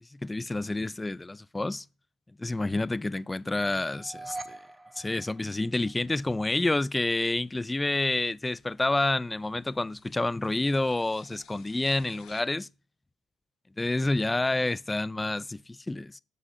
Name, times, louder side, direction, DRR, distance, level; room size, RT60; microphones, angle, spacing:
voice 1, 0.1-1.8 2.4-4.6 5.0-12.7 13.8-16.2, left 2 dB, 15° left, 0.3 m, -29 dB
sound 1, 3.8-6.1, right 2 dB, 20° right, 0.9 m, -43 dB
sound 2, 7.4-12.4, left 8 dB, 75° left, 1.5 m, -58 dB
8.2 x 4.9 x 4.2 m
supercardioid pair, 65°, 0 cm